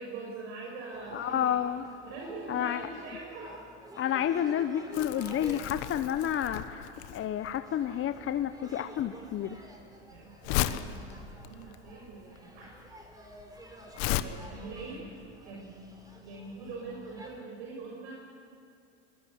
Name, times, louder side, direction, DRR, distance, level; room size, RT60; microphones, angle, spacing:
voice 1, 0.0-1.5 2.0-3.6 10.1-12.8 14.0-15.1 15.4-15.8 16.2-18.1, right 3 dB, 75° right, -2 dB, 6.3 m, -43 dB
sound 1, 0.9-17.4, right 1 dB, 10° right, 5.4 m, -51 dB
voice 2, 1.1-1.8 2.5-2.8 4.0-9.6, left 10 dB, 35° left, 9 dB, 1.0 m, -30 dB
Crumpling crinkling, 4.9-14.2, left 15 dB, 65° left, 1.3 m, -35 dB
23.5 x 21.0 x 9.7 m, 2.4 s
hypercardioid pair, 100°, 36 cm